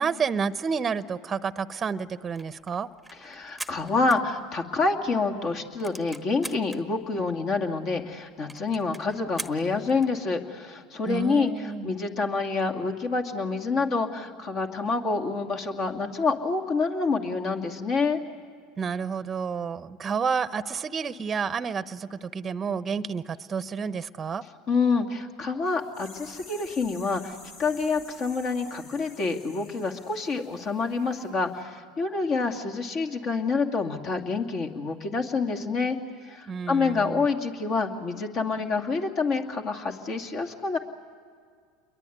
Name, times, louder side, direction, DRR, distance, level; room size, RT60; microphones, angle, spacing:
voice 1, 0.0-2.9 11.1-11.9 18.8-24.4 36.5-37.3, right 6 dB, 25° right, 14 dB, 0.8 m, -30 dB
sound 1, 2.2-4.9 5.2-5.3 5.5-6.8 7.4-7.5 7.7-7.8 8.1-8.2 8.5-10.2, right 2 dB, ahead, 1.2 m, -41 dB
voice 2, 3.2-18.2 24.7-36.0 36.2-40.8, left 4 dB, 45° left, 3 dB, 2.4 m, -27 dB
sound 2, 25.7-31.3 31.6-31.7, left 3 dB, 65° left, 4.8 m, -50 dB
28.5 x 22.5 x 9.4 m, 2.1 s
hypercardioid pair, 95°, 0 cm